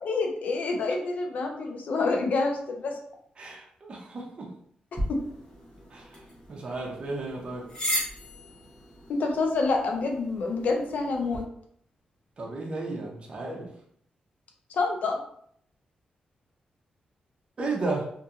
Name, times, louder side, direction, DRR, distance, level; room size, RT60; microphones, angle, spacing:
voice 1, 0.0-3.0 9.1-11.4 14.7-15.2, left 3 dB, 70° left, 2 dB, 0.6 m, -27 dB
voice 2, 3.4-4.6 5.9-6.2 6.5-7.7 12.4-13.7 17.6-18.1, right 3 dB, 40° right, -1 dB, 0.6 m, -34 dB
sound 1, 4.9-11.4, equal, 40° left, 0.9 m, -37 dB
2.7 x 2.6 x 2.4 m, 0.65 s
cardioid pair, 110°, 3 cm